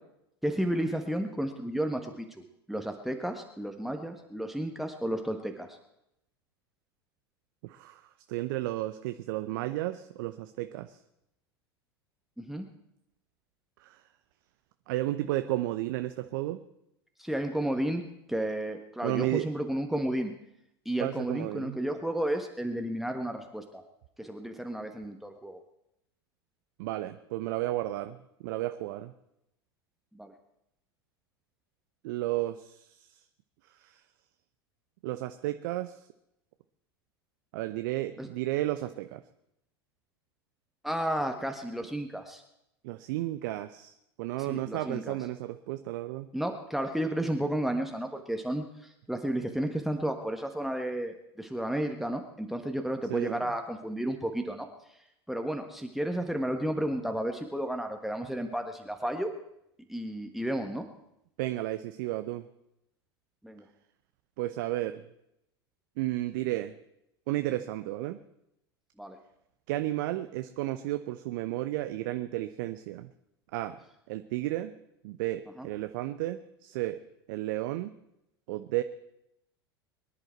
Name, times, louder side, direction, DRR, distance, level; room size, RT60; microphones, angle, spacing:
voice 1, 0.4-2.4 2.7-5.8 12.4-12.7 17.2-18.0 18.3-20.3 20.8-23.8 24.2-25.6 30.1-30.3 38.2-38.3 40.8-42.4 44.4-45.2 46.3-48.6 49.1-54.7 55.3-59.3 59.9-60.8 63.4-63.6 69.0-69.2 75.6-75.7, right 1 dB, ahead, 4 dB, 1.3 m, -32 dB
voice 2, 7.6-8.0 8.3-11.0 13.8-14.0 14.9-16.6 19.0-19.5 21.0-21.8 26.8-28.2 28.4-29.1 32.0-33.2 33.7-34.0 35.0-36.1 37.5-39.2 42.8-46.3 53.1-53.5 61.4-62.5 64.4-65.0 66.0-66.7 67.3-68.2 69.7-73.1 73.5-73.8 74.1-74.7 75.0-77.0 77.3-77.9 78.5-78.8, right 16 dB, 55° right, 10 dB, 0.7 m, -33 dB
23.0 x 10.5 x 4.5 m, 0.81 s
figure-of-eight pair, 85°, 13 cm